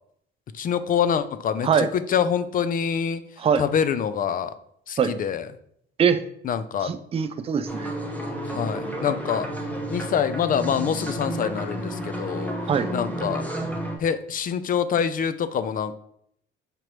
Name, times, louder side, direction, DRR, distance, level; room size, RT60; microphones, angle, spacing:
voice 1, 0.5-3.2 3.6-4.5 4.9-5.5 6.4-6.9 8.5-9.5 9.9-12.5 12.9-13.4 14.0-16.0, left 8 dB, 45° left, 12 dB, 0.4 m, -25 dB
voice 2, 6.8-7.9 12.7-12.9, right 7 dB, 30° right, 10 dB, 0.4 m, -22 dB
sound 1, 7.7-14.0, right 1 dB, 5° left, 0.9 m, -31 dB
5.1 x 3.0 x 3.0 m, 0.70 s
cardioid pair, 90°, 20 cm